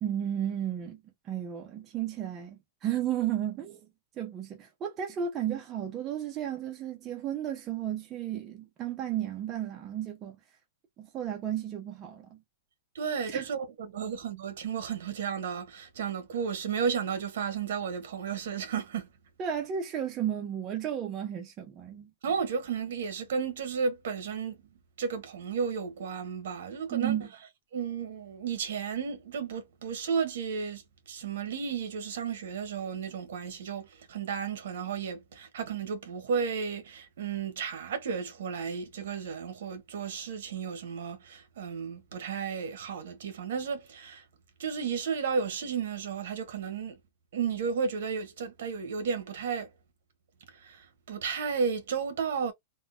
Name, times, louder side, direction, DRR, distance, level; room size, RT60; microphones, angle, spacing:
voice 1, 0.0-3.9 4.2-10.4 11.0-12.4 13.3-13.5 19.4-22.1 26.9-27.3, right 10 dB, 20° right, 0.5 m, -33 dB
voice 2, 12.9-19.1 22.2-24.6 25.0-27.2 27.7-44.2 44.6-47.0 47.3-49.7 50.5-52.5, right 6 dB, 70° right, 1.1 m, -33 dB
3.6 x 2.1 x 2.6 m
supercardioid pair, 170°, 0 cm